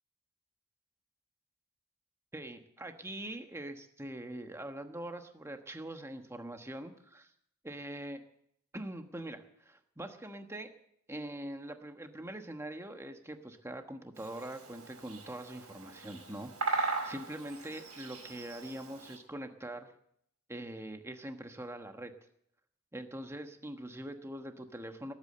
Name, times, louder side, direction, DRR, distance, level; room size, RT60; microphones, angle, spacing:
voice 1, 2.3-7.3 7.6-8.2 8.7-10.7 11.1-19.9 20.5-22.1 22.9-25.1, right 1 dB, 10° right, 6 dB, 1.2 m, -43 dB
Bird vocalization bird call bird song, 14.2-19.2, right 3 dB, 85° right, 5.1 m, -39 dB
19.5 x 8.6 x 7.7 m, 0.71 s
head